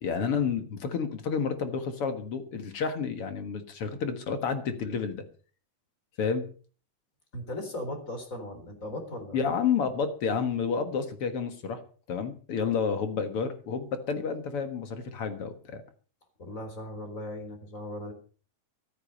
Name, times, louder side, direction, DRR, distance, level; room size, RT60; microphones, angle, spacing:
voice 1, 0.0-5.2 6.2-6.5 9.3-11.8 12.1-15.8, left 6 dB, 55° left, 8 dB, 1.8 m, -30 dB
voice 2, 7.3-9.4 16.4-18.1, left 1 dB, 20° left, 6 dB, 3.8 m, -38 dB
14.5 x 14.0 x 5.4 m, 0.41 s
omnidirectional pair, 4.3 m